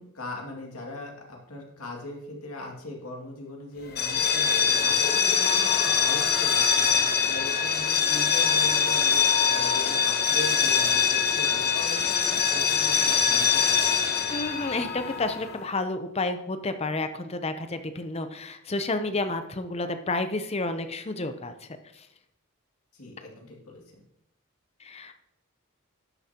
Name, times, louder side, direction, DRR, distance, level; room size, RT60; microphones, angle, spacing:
voice 1, 0.0-14.0 22.9-23.8, left 2 dB, 90° left, 0 dB, 2.3 m, -40 dB
sound 1, 3.9-15.6, left 6 dB, 45° left, 1.0 m, -23 dB
voice 2, 14.3-21.7 24.8-25.1, left 2 dB, 30° left, 9 dB, 0.6 m, -30 dB
12.0 x 8.7 x 2.9 m, 0.82 s
head